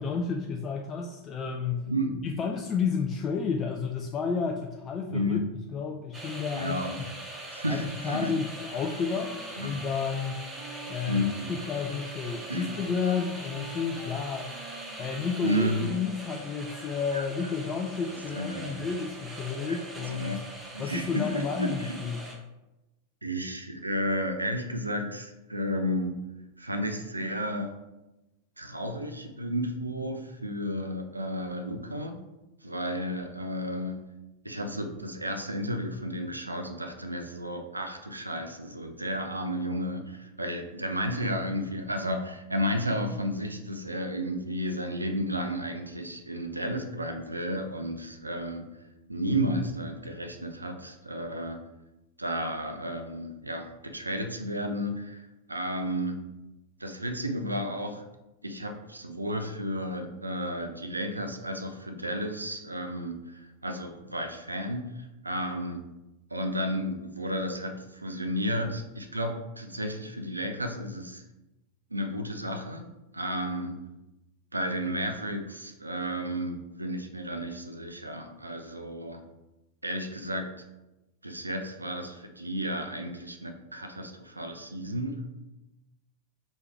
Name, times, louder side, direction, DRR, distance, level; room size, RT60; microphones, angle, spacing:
voice 1, 0.0-1.9 2.2-5.4 5.7-6.8 7.7-10.4 10.9-14.5 15.0-20.4 20.8-22.2, left 5 dB, 25° left, 2 dB, 0.3 m, -31 dB
voice 2, 1.9-2.2 5.1-5.4 6.5-7.0 7.5-8.3 9.6-9.8 11.0-11.5 12.5-12.8 15.4-15.9 17.1-17.3 18.3-18.9 19.7-19.8 20.1-20.4 20.7-22.0 23.2-26.2 26.6-27.7 28.6-32.2 32.6-34.0 34.4-48.6 49.1-51.6 52.2-55.2 55.5-56.3 56.8-58.0 58.4-65.8 66.3-71.2 71.9-72.9 73.1-73.8 74.5-79.2 79.8-80.5 81.2-85.3, equal, 85° right, 6 dB, 0.4 m, -32 dB
sound 1, 6.1-22.3, right 2 dB, 15° right, 0.9 m, -42 dB
Wind instrument woodwind instrument, 8.6-16.1, right 1 dB, 50° right, 1.2 m, -48 dB
3.3 x 3.1 x 4.4 m, 0.99 s
figure-of-eight pair, 90°, 0 cm